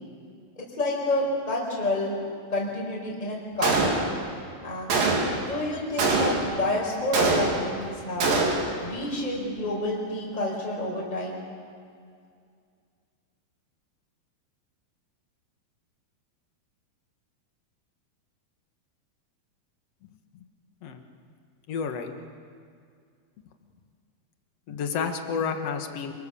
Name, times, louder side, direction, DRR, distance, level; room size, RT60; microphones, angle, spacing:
voice 1, 0.6-2.2 2.5-3.7 4.6-5.1 5.4-8.4 8.8-11.4, left 1 dB, 10° left, -3 dB, 4.8 m, -29 dB
Gunshot gunfire, 3.6-4.3 4.9-5.5 6.0-6.6 7.1-7.8 8.2-8.8, right 3 dB, 60° right, 4.5 m, -24 dB
voice 2, 21.7-22.1 24.7-26.1, left 6 dB, 55° left, 5 dB, 1.9 m, -30 dB
28.5 x 22.0 x 7.0 m, 2.2 s
omnidirectional pair, 4.7 m